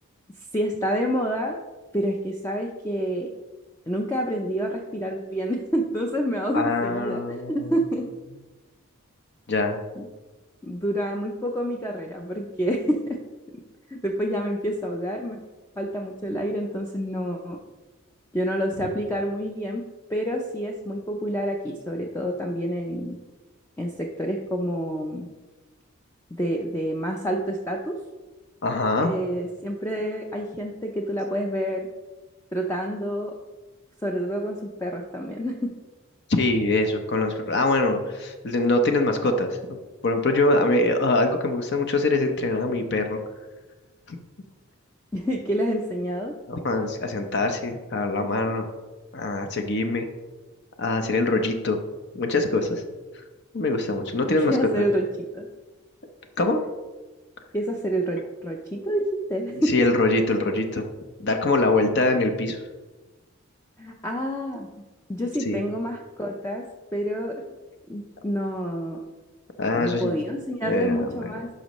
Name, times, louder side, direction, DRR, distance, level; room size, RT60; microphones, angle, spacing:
voice 1, 0.5-1.6 1.9-3.3 3.9-8.1 10.0-10.1 10.6-13.2 13.9-15.4 15.8-17.6 18.3-19.8 20.1-23.2 23.8-25.3 26.3-28.0 29.0-31.9 32.5-33.4 34.0-35.7 45.1-46.3 54.4-55.1 55.3-55.5 57.5-59.7 63.8-64.7 65.1-66.6 66.9-67.3 67.9-69.0 69.7-71.5, equal, 15° left, 1 dB, 0.5 m, -28 dB
voice 2, 6.5-7.7 9.5-9.8 28.6-29.1 36.3-39.8 40.0-43.2 44.1-44.2 46.5-48.7 49.1-50.0 50.8-51.8 52.1-52.8 53.5-54.8 56.4-56.6 59.5-60.9 61.2-62.6 65.4-65.6 69.6-70.2 70.6-71.3, left 2 dB, 50° left, 5 dB, 0.7 m, -23 dB
11.5 x 5.3 x 3.0 m, 1.2 s
head